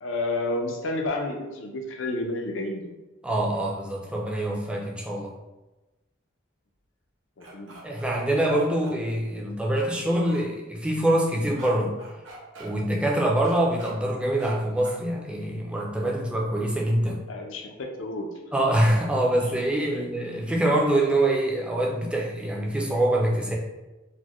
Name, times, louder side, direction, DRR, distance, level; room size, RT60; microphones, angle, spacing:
voice 1, 0.0-3.0 7.4-7.8 14.4-14.6 17.3-18.3 19.9-20.1, left 2 dB, 75° left, 3 dB, 0.5 m, -31 dB
voice 2, 3.2-5.3 7.8-11.9 12.6-17.2 18.5-23.6, right 1 dB, 5° right, -2 dB, 0.4 m, -25 dB
sound 1, 7.4-8.9 9.8-9.9 10.3-10.4 11.6-11.7 12.0-12.7 13.4-13.9 14.4-14.5 14.8-15.0, right 2 dB, 70° right, 0.7 m, -44 dB
4.2 x 2.1 x 3.0 m, 1.1 s
head